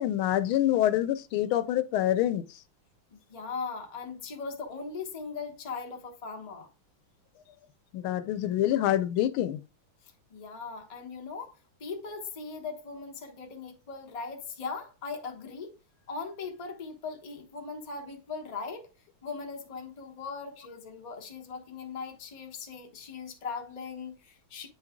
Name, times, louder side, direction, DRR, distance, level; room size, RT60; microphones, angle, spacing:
voice 1, 0.0-2.4 7.9-9.6, left 12 dB, 90° left, 1.4 m, -26 dB
voice 2, 3.1-6.7 10.0-15.8 16.1-18.9 19.2-24.7, left 4 dB, 30° left, 0.7 m, -39 dB
8.7 x 3.2 x 3.5 m
omnidirectional pair, 2.2 m